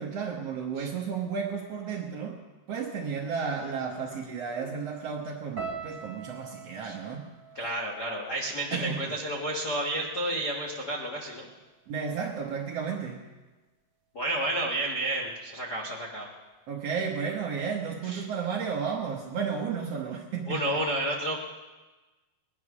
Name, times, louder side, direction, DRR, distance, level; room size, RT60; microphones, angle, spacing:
voice 1, 0.0-2.4 2.7-7.3 8.7-9.2 11.9-13.2 16.7-20.8, right 6 dB, 80° right, 0 dB, 1.4 m, -33 dB
sound 1, 5.6-9.8 10.0-10.8 11.4-11.6, right 5 dB, 35° right, 2.2 m, -44 dB
voice 2, 7.5-11.5 14.1-16.3 18.0-18.2 20.5-21.4, right 1 dB, 80° left, -2 dB, 0.9 m, -31 dB
19.5 x 10.5 x 6.2 m, 1.2 s
omnidirectional pair, 4.5 m